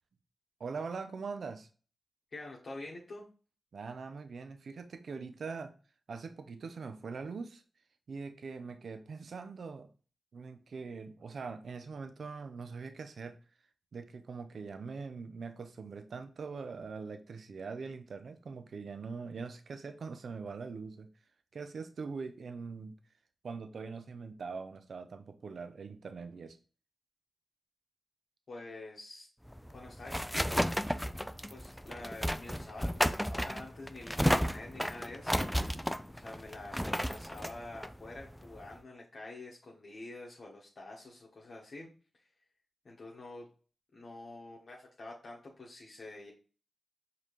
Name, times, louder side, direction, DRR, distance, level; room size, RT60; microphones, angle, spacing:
voice 1, 0.6-1.7 3.7-5.7 6.1-7.6 8.1-9.9 10.3-13.4 13.9-21.1 21.5-22.9 23.4-26.6, right 4 dB, 70° right, 0.5 m, -42 dB
voice 2, 2.3-3.2 28.5-29.3 29.7-30.7 31.5-35.8 36.1-41.9 42.8-43.5 43.9-46.3, left 2 dB, 60° left, 1.0 m, -47 dB
sound 1, 29.5-38.8, equal, 5° left, 0.3 m, -33 dB
4.9 x 2.9 x 3.0 m
cardioid pair, 45°, 0 cm